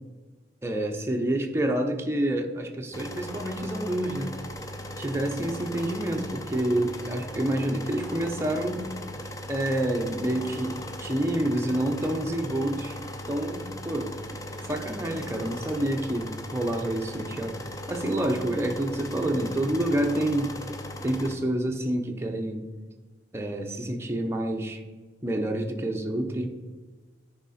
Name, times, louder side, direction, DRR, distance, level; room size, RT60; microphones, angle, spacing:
voice 1, 0.6-4.3 5.0-8.9 9.5-13.0 13.3-14.2 14.6-17.6 17.9-20.5 21.0-22.6 23.3-24.8 25.2-26.5, right 1 dB, 15° right, 2 dB, 0.7 m, -28 dB
sound 1, 2.9-21.3, left 1 dB, 20° left, 0.6 m, -38 dB
10.0 x 5.0 x 4.2 m, 1.3 s
head